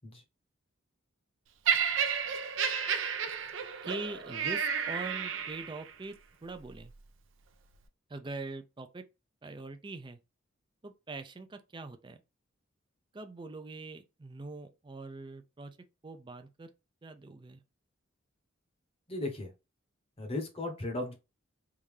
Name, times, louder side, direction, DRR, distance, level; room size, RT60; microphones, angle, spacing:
Laughter, 1.7-5.9 6.7-6.9, right 7 dB, 70° right, 0.6 m, -31 dB
voice 1, 3.8-6.1 6.4-6.9 8.1-9.0 9.4-10.2 10.8-12.2 13.1-15.8 16.0-16.7 17.0-17.6, right 3 dB, 25° right, 0.4 m, -43 dB
voice 2, 19.1-19.5 20.2-21.1, left 2 dB, 30° left, 0.9 m, -36 dB
3.6 x 2.7 x 3.2 m
head